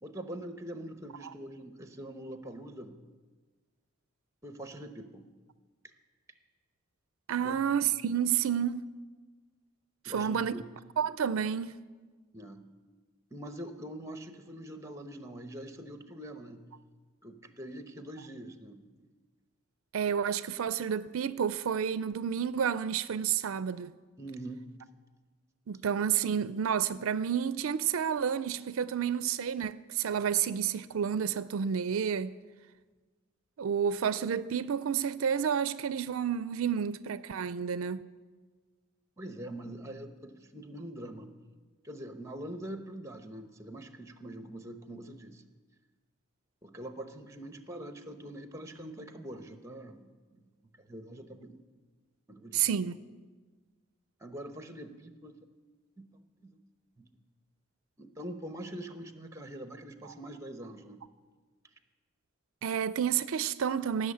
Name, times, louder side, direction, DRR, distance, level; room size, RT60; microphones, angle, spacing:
voice 1, 0.0-3.0 4.4-5.3 7.4-7.6 10.0-10.6 12.3-12.6 13.3-16.7 17.2-19.0 24.2-24.7 39.2-41.3 41.8-45.4 46.6-51.6 52.3-52.7 54.2-55.4 56.0-56.6 57.0-57.1 58.0-61.0, right 1 dB, 15° right, 0.8 m, -44 dB
voice 2, 7.3-8.9 10.0-10.5 11.0-11.8 19.9-23.9 25.7-32.4 33.6-38.1 52.5-53.0 60.0-60.1 62.6-64.1, right 8 dB, 75° right, 0.4 m, -30 dB
16.5 x 6.8 x 8.5 m
head